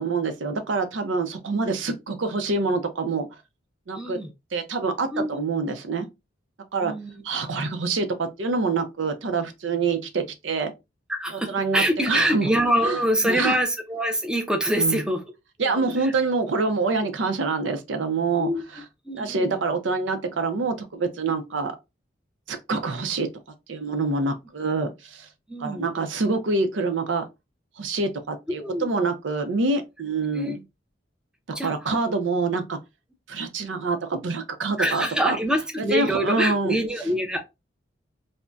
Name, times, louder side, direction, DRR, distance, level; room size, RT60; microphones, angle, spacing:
voice 1, 0.0-3.3 3.9-4.2 4.5-6.1 6.7-6.9 7.2-10.7 11.5-12.5 12.8-13.0 13.2-13.6 14.8-15.0 15.6-18.8 19.1-21.8 22.5-23.3 23.7-25.3 25.6-27.3 27.8-30.6 31.6-32.8 33.3-35.4 35.8-36.8, right 3 dB, 85° right, 0.6 m, -26 dB
voice 2, 3.9-4.3 5.1-5.4 6.8-7.1 7.5-7.7 11.1-15.2 15.6-16.1 18.4-18.6 19.1-19.5 25.5-25.9 28.6-28.9 30.3-30.5 31.5-32.0 34.8-37.4, equal, 5° right, 0.5 m, -25 dB
2.6 x 2.1 x 3.3 m
head